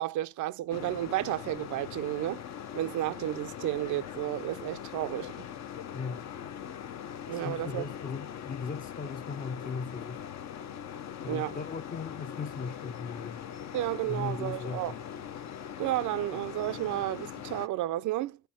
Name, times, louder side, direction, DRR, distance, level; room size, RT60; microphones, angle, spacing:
voice 1, 0.0-2.4 2.8-5.5 7.3-7.9 11.3-11.5 13.7-14.9 15.8-18.4, right 15 dB, 75° right, 0.5 m, -32 dB
sound 1, 0.7-17.7, left 9 dB, 60° left, 0.7 m, -41 dB
voice 2, 7.3-10.3 11.2-13.4 14.0-15.0, left 5 dB, 30° left, 0.5 m, -38 dB
5.5 x 4.4 x 6.2 m
cardioid pair, 90°, 30 cm